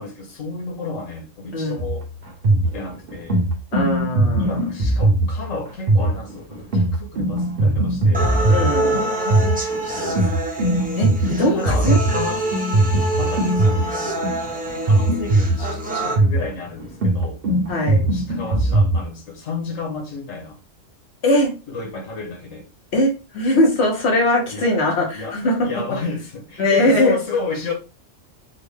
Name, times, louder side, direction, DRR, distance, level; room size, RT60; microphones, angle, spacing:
voice 1, 0.0-2.1 2.6-3.4 4.4-8.5 8.8-10.5 11.5-12.5 13.2-17.4 18.1-20.6 21.7-22.7 24.5-24.7 25.1-27.7, left 3 dB, 90° left, 1.3 m, -32 dB
voice 2, 1.5-1.9 3.7-4.5 8.5-8.9 11.0-12.0 17.7-18.0 21.2-21.5 22.9-25.7 26.6-27.2, left 1 dB, 60° left, 1.3 m, -20 dB
sound 1, 1.8-19.0, right 2 dB, 50° right, 1.0 m, -20 dB
sound 2, 8.1-16.1, right 1 dB, 10° right, 0.6 m, -26 dB
3.7 x 2.2 x 3.4 m
omnidirectional pair, 1.3 m